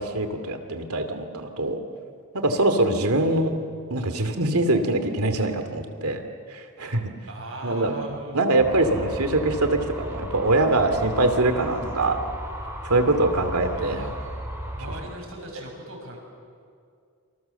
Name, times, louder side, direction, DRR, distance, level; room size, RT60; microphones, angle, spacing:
voice 1, 0.0-1.8 2.3-3.6 3.9-6.2 6.5-7.1 7.6-12.2 12.8-14.1, right 2 dB, 85° right, 7 dB, 2.6 m, -23 dB
voice 2, 7.3-8.8 13.8-14.2 14.8-16.2, right 1 dB, 65° right, 1 dB, 6.6 m, -38 dB
sound 1, 8.6-15.0, equal, 10° right, 4.2 m, -35 dB
27.5 x 25.0 x 7.1 m, 2.2 s
head